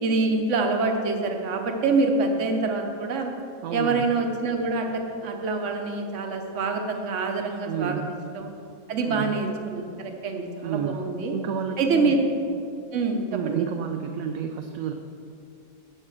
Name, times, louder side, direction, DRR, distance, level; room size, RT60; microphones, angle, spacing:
voice 1, 0.0-3.3 3.7-8.0 8.3-8.5 8.9-11.3 11.8-12.3 12.9-13.7, right 3 dB, 55° right, 3 dB, 1.2 m, -26 dB
voice 2, 3.6-4.1 7.7-8.1 9.1-9.4 10.6-12.2 13.3-14.9, right 7 dB, 75° right, 5 dB, 1.0 m, -30 dB
8.3 x 6.6 x 6.3 m, 2.4 s
omnidirectional pair, 1.6 m